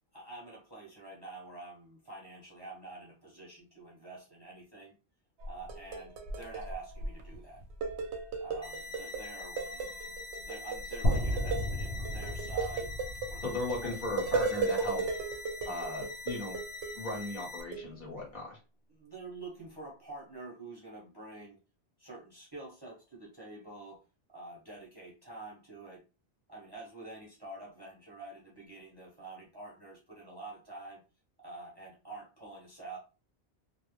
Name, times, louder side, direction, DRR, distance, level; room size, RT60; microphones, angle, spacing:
voice 1, 0.1-5.0 5.4-7.6 8.4-12.9 13.3-13.5 13.8-14.2 18.9-21.6 22.0-24.0 24.3-26.0 26.5-31.0 31.4-33.0, right 3 dB, 25° right, -4 dB, 0.7 m, -47 dB
sound 1, 5.4-7.4 7.6-9.3 9.6-17.3 17.7-17.9, right 4 dB, 90° right, 0.9 m, -35 dB
sound 2, 8.6-17.6, left 4 dB, 20° left, 0.5 m, -44 dB
sound 3, 11.0-15.1, equal, 70° left, 0.9 m, -34 dB
voice 2, 13.4-15.0 15.6-16.6 16.9-18.6, left 2 dB, 50° left, -3 dB, 1.1 m, -37 dB
2.4 x 2.0 x 3.0 m, 0.32 s
omnidirectional pair, 1.1 m